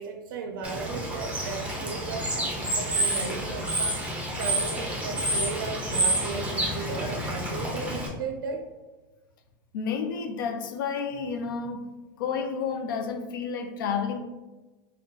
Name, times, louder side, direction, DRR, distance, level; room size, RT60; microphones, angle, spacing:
voice 1, 0.0-8.7, right 4 dB, 85° right, 4 dB, 0.4 m, -36 dB
Bird / Water, 0.6-8.1, right 1 dB, 10° right, 1.0 m, -29 dB
voice 2, 9.7-11.9 12.2-14.2, left 6 dB, 85° left, 6 dB, 0.5 m, -30 dB
3.7 x 2.2 x 3.8 m, 1.2 s
supercardioid pair, 105°, 11 cm